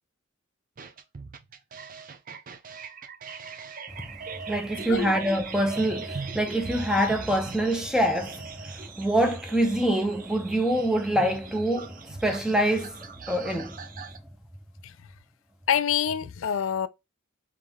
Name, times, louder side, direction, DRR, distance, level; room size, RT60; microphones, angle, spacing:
sound 1, 0.8-14.2, right 5 dB, 40° right, 0.5 m, -41 dB
voice 1, 4.5-13.8, right 1 dB, 5° right, 0.7 m, -25 dB
voice 2, 15.7-16.9, left 8 dB, 65° left, 0.4 m, -26 dB
3.5 x 3.2 x 3.5 m
head